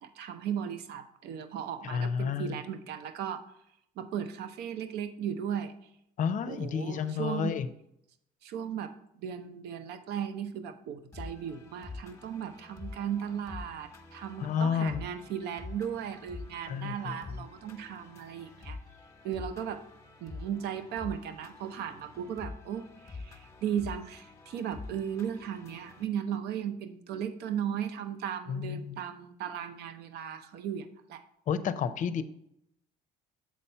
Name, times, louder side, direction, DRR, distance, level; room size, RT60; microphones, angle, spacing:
voice 1, 0.0-3.4 4.0-5.7 6.5-7.6 8.4-8.9 9.2-18.8 19.2-19.8 20.2-31.2, right 8 dB, 75° right, 9 dB, 0.7 m, -36 dB
voice 2, 1.8-2.6 6.2-7.7 14.4-15.0 16.7-17.2 28.5-29.0 31.5-32.2, left 7 dB, 50° left, 11 dB, 0.5 m, -31 dB
sound 1, 11.1-26.0, left 3 dB, 15° left, 1.1 m, -46 dB
7.5 x 4.2 x 5.5 m, 0.76 s
cardioid pair, 110°, 17 cm